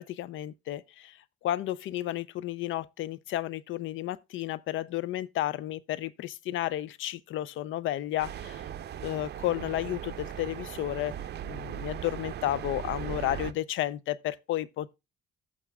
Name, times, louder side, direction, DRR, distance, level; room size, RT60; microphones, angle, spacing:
voice 1, 0.0-8.6 9.0-11.2 11.4-14.9, left 13 dB, 75° left, 0.5 m, -32 dB
sound 1, 8.2-13.5, right 10 dB, 55° right, 0.6 m, -38 dB
15.0 x 6.1 x 2.3 m
cardioid pair, 90°, 20 cm